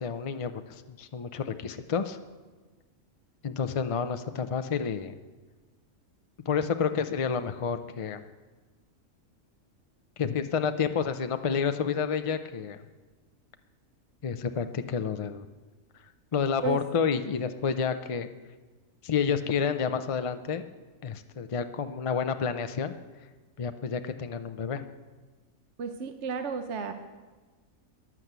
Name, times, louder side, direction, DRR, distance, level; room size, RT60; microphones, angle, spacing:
voice 1, 0.0-2.2 3.4-5.2 6.5-8.2 10.2-12.8 14.2-15.5 16.3-18.3 19.0-20.6 21.0-22.9 23.6-24.8, left 6 dB, 50° left, 9 dB, 0.4 m, -29 dB
voice 2, 25.8-26.9, right 5 dB, 60° right, 7 dB, 1.1 m, -32 dB
12.0 x 11.0 x 8.1 m, 1.3 s
omnidirectional pair, 1.4 m